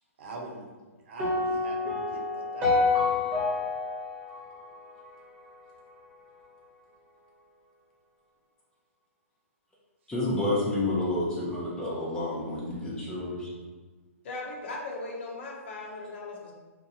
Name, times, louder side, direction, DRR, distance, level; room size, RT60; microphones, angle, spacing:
voice 1, 0.2-3.4, right 2 dB, 50° right, -1 dB, 0.7 m, -44 dB
sound 1, 1.2-5.5, left 4 dB, 30° right, 1.1 m, -28 dB
voice 2, 10.1-13.5, left 2 dB, 10° left, -7 dB, 0.8 m, -29 dB
voice 3, 14.2-16.5, left 2 dB, 50° left, -1 dB, 0.7 m, -38 dB
2.6 x 2.2 x 4.0 m, 1.3 s
figure-of-eight pair, 115°, 8 cm